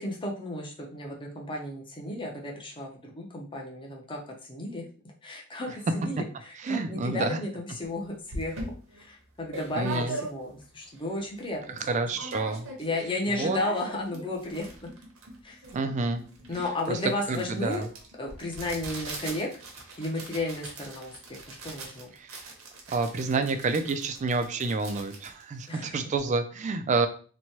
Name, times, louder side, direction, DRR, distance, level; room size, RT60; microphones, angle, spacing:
voice 1, 0.0-4.8 5.2-8.6 8.9-11.8 12.1-12.2 12.8-14.9 15.4-15.7 16.5-17.9 18.2-19.6 20.0-22.1 25.7-26.0, left 1 dB, 25° left, 0 dB, 0.6 m, -34 dB
voice 2, 6.6-7.4 9.8-10.2 11.8-12.7 13.3-13.6 15.7-16.2 16.9-17.0 17.3-17.8 22.2-22.5 22.9-27.1, right 3 dB, 35° right, 8 dB, 0.3 m, -28 dB
sound 1, 7.8-7.9 8.3-10.7 11.1-11.2 11.4-11.8 12.1-13.0 13.2-26.3, right 2 dB, 75° right, 0.8 m, -41 dB
3.0 x 2.2 x 2.8 m, 0.40 s
head